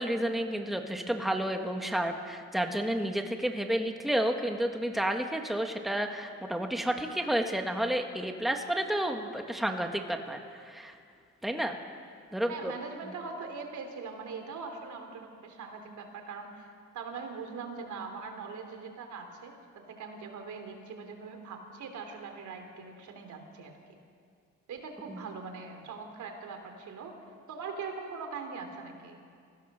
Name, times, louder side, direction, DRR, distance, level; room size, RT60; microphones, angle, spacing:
voice 1, 0.0-11.0 11.4-11.8 12.3-12.7, right 1 dB, ahead, 4 dB, 1.7 m, -31 dB
voice 2, 12.5-16.7 16.9-24.0 24.7-27.1 27.5-29.2, right 5 dB, 70° right, 5 dB, 3.2 m, -41 dB
24.0 x 16.5 x 6.7 m, 2.2 s
cardioid pair, 90°, 30 cm